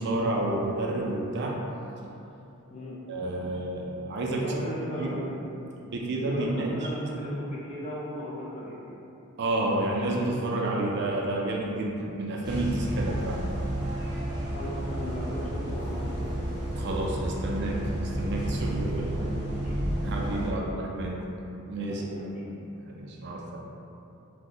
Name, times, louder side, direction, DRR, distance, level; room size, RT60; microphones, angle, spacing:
voice 1, 0.0-1.6 3.1-4.6 5.0-5.2 5.8-6.9 7.2-7.3 9.4-13.5 14.0-14.1 16.7-17.9 18.2-19.2 20.0-21.2 21.7-22.0 22.4-22.6 22.9-23.7, right 2 dB, 50° right, -2 dB, 0.4 m, -30 dB
voice 2, 4.4-5.3 6.3-8.9 14.4-16.3 19.2-19.7 20.6-20.7 21.9-22.3 23.0-23.1, equal, 30° left, -5 dB, 0.5 m, -37 dB
sound 1, 12.4-20.5, right 1 dB, 20° right, 0.9 m, -31 dB
2.7 x 2.1 x 3.8 m, 2.9 s
head